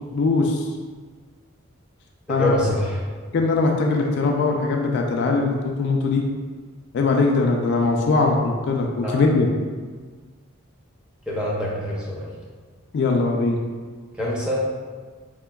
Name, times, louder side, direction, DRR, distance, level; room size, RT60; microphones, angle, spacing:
voice 1, 0.1-0.7 2.3-2.5 3.3-6.2 6.9-9.5 12.9-13.6, left 3 dB, 55° left, 1 dB, 0.3 m, -21 dB
voice 2, 2.3-3.0 9.0-9.2 11.3-12.3 14.2-14.6, left 1 dB, 5° right, -6 dB, 0.5 m, -25 dB
4.2 x 2.2 x 2.2 m, 1.5 s
head